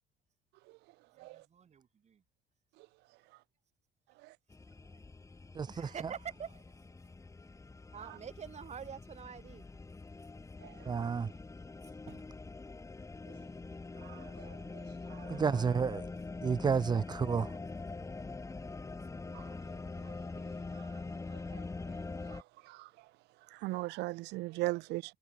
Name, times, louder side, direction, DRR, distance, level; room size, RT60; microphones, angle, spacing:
voice 1, 1.1-2.2 3.2-3.3 4.8-5.0 5.7-7.0 7.9-9.7 12.1-12.2 17.0-17.1 18.1-18.8 24.6-24.8, right 7 dB, 40° right, 3.2 m, -47 dB
sound 1, 4.5-22.4, left 3 dB, 20° left, 2.5 m, -44 dB
voice 2, 5.5-5.9 10.9-11.3 15.3-16.1 16.4-17.5, right 6 dB, 25° right, 0.5 m, -30 dB
voice 3, 10.6-11.1 14.0-14.5 15.1-15.3 22.3-22.4 22.7-22.9 23.6-25.1, right 21 dB, 85° right, 0.5 m, -38 dB
cardioid pair, 110°, 17 cm